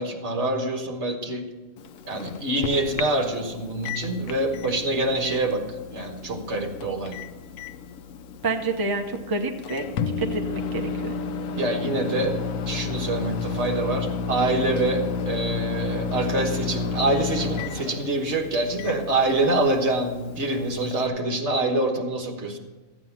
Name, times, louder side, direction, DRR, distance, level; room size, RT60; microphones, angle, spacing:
voice 1, 0.0-1.5 2.0-5.6 5.9-7.2 11.5-12.4 12.7-22.6, right 2 dB, 60° right, 4 dB, 1.6 m, -25 dB
Microwave oven, 1.8-21.1, left 5 dB, 80° left, 1.1 m, -32 dB
voice 2, 8.4-9.8 10.2-11.1, right 3 dB, 20° right, 4 dB, 0.8 m, -28 dB
14.5 x 9.0 x 5.8 m, 1.2 s
omnidirectional pair, 1.4 m